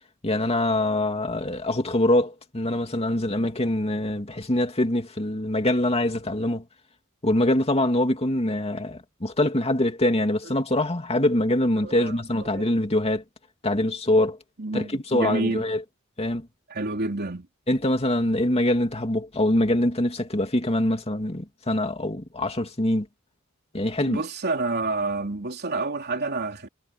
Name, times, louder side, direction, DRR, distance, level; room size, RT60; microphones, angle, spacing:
voice 1, 0.2-6.6 7.2-13.2 13.6-14.4 14.7-15.8 16.2-16.5 17.7-23.1 23.7-24.2, left 1 dB, 30° left, 2.7 m, -24 dB
voice 2, 11.8-12.2 12.5-12.7 14.6-15.6 16.7-17.5 24.1-26.7, right 2 dB, 50° right, 3.6 m, -28 dB
head